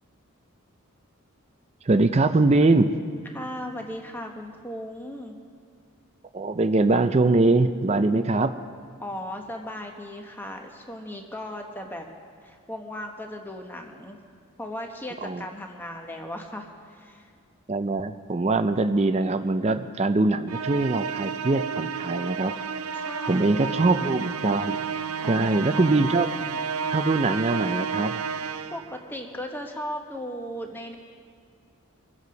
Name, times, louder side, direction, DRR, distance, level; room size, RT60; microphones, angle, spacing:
voice 1, 1.8-2.9 6.3-8.5 15.2-15.5 17.7-22.5 23.3-24.8 25.3-26.3 26.9-28.2, right 2 dB, 30° right, 10 dB, 0.4 m, -22 dB
voice 2, 3.3-5.3 9.0-12.1 12.4-14.2 14.6-17.3 22.9-24.0 25.2-26.0 28.7-31.0, left 1 dB, 10° left, 2 dB, 1.1 m, -37 dB
Musical instrument, 20.5-29.0, right 6 dB, 80° right, 0.6 m, -31 dB
24.5 x 8.2 x 5.1 m, 2.2 s
head